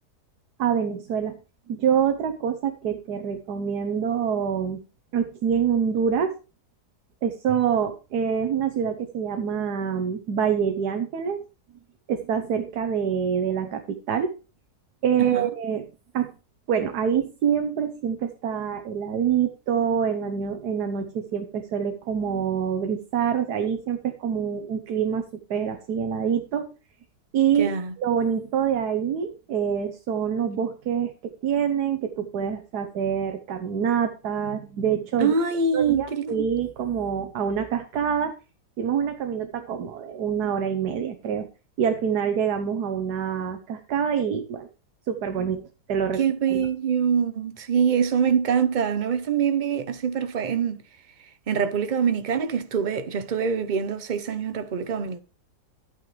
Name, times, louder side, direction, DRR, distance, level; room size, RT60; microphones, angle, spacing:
voice 1, 0.6-1.4 1.7-4.8 5.1-6.3 7.2-11.4 12.1-14.3 15.0-15.8 16.1-16.3 16.7-25.2 25.5-26.7 27.3-31.1 31.4-35.3 35.7-38.3 38.8-41.5 41.8-44.7 45.1-45.6 45.9-46.2 46.5-46.7, right 7 dB, 75° right, 1.5 m, -26 dB
voice 2, 15.2-15.5 27.6-27.9 35.2-36.5 46.2-50.8 51.5-55.2, right 6 dB, 40° right, 0.7 m, -24 dB
11.5 x 8.9 x 3.3 m
omnidirectional pair, 1.7 m